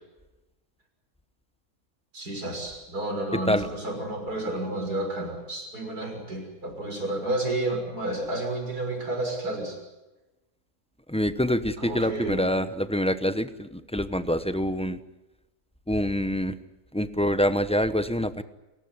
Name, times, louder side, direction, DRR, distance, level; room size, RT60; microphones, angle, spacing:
voice 1, 2.1-9.8 11.8-12.5, right 1 dB, 80° right, 2 dB, 6.8 m, -31 dB
voice 2, 3.3-3.7 11.1-15.0 15.9-16.6 16.9-18.4, equal, 5° left, 11 dB, 0.8 m, -26 dB
29.5 x 15.5 x 9.7 m, 1.1 s
omnidirectional pair, 1.6 m